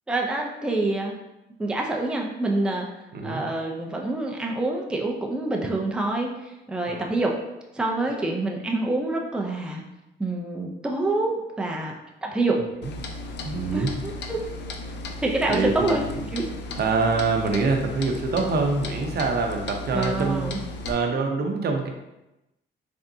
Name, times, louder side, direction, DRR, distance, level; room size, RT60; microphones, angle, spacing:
voice 1, 0.1-1.1 1.6-2.9 3.2-7.3 7.7-9.8 10.2-11.3 11.6-11.9 12.2-12.6 13.7-14.4 15.2-16.4 17.1-17.2 19.9-20.6, right 2 dB, 5° right, 0 dB, 0.5 m, -26 dB
Clock, 12.8-20.9, left 2 dB, 60° left, 0.5 m, -35 dB
voice 2, 13.4-13.9 15.5-16.2 16.8-21.9, right 3 dB, 55° right, 3 dB, 0.7 m, -25 dB
3.8 x 3.4 x 2.7 m, 0.95 s
cardioid pair, 90°, 20 cm